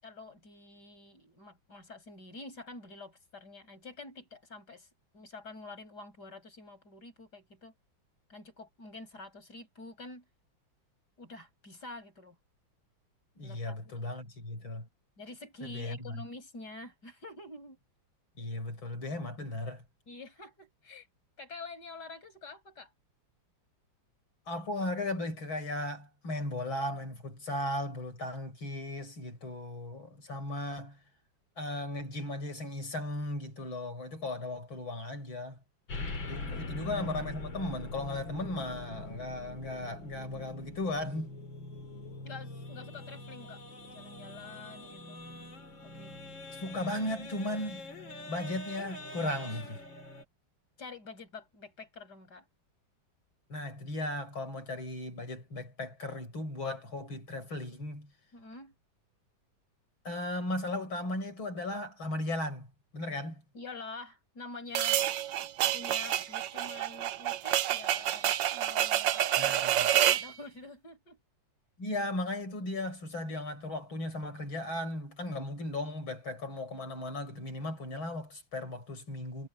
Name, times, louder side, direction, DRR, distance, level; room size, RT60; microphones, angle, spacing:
voice 1, 0.0-4.9 5.1-7.7 8.3-10.2 11.2-12.4 13.4-14.1 15.2-17.8 20.1-21.1 21.4-22.9 36.4-37.0 41.9-43.6 43.9-45.2 45.8-46.2 50.8-52.5 58.3-58.7 63.5-65.0 65.7-71.2, left 3 dB, 55° left, 7.9 m, -47 dB
voice 2, 13.4-14.9 15.6-16.1 18.4-19.8 24.5-31.0 31.6-35.6 36.2-41.3 46.6-47.9 48.3-49.8 53.5-58.1 60.0-62.7 62.9-63.4 69.4-69.9 71.8-79.5, left 1 dB, 90° left, 7.4 m, -36 dB
sound 1, 35.9-50.2, left 2 dB, 70° left, 4.2 m, -43 dB
sound 2, 64.8-70.3, right 12 dB, 70° right, 1.4 m, -28 dB
omnidirectional pair, 2.1 m